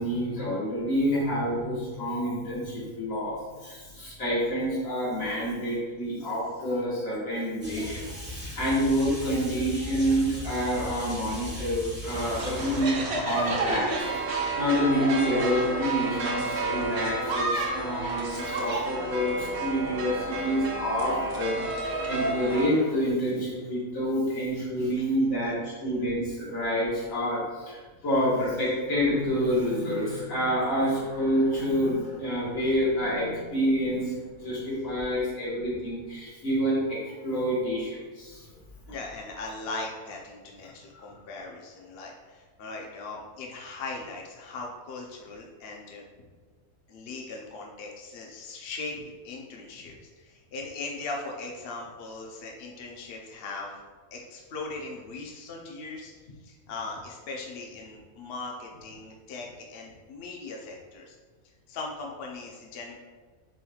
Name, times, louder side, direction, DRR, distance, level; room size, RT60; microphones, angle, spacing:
voice 1, 0.0-3.4 3.6-38.5 40.9-41.0, equal, 75° left, -8 dB, 2.0 m, -28 dB
sound 1, 7.6-12.9, equal, 10° right, 1.0 m, -38 dB
sound 2, 12.1-22.7, right 2 dB, 55° right, 0.9 m, -30 dB
voice 2, 38.9-46.0 46.9-53.8 54.1-61.2 61.7-63.0, left 3 dB, 55° left, -1 dB, 0.7 m, -39 dB
7.5 x 3.0 x 2.3 m, 1.4 s
omnidirectional pair, 1.4 m